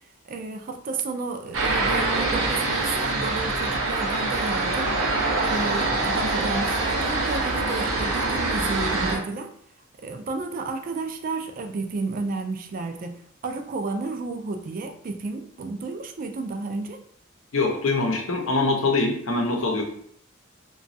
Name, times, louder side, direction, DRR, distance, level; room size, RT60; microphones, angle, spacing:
voice 1, 0.3-4.9 5.4-9.5 10.0-17.0, right 3 dB, 45° right, 7 dB, 0.3 m, -32 dB
sound 1, 1.5-9.2, right 2 dB, 85° right, 0.6 m, -25 dB
voice 2, 17.5-19.8, left 3 dB, 85° left, 1 dB, 0.7 m, -23 dB
3.0 x 2.3 x 2.6 m, 0.66 s
head